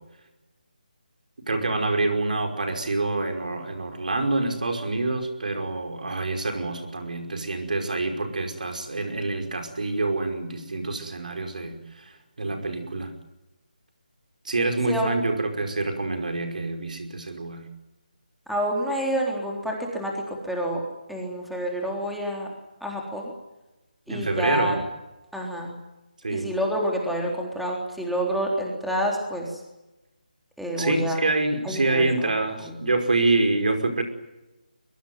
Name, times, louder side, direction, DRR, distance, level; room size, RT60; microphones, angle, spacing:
voice 1, 1.5-13.1 14.5-17.6 24.1-24.8 26.2-26.5 30.8-34.0, right 2 dB, 60° right, 5 dB, 5.3 m, -26 dB
voice 2, 18.5-20.8 21.1-22.5 22.8-23.3 24.1-24.8 25.3-25.7 26.3-29.6 30.6-31.2 31.6-32.3 32.6-32.8, equal, ahead, -1 dB, 3.7 m, -28 dB
22.5 x 22.5 x 9.5 m, 1.0 s
figure-of-eight pair, 155°, 5 cm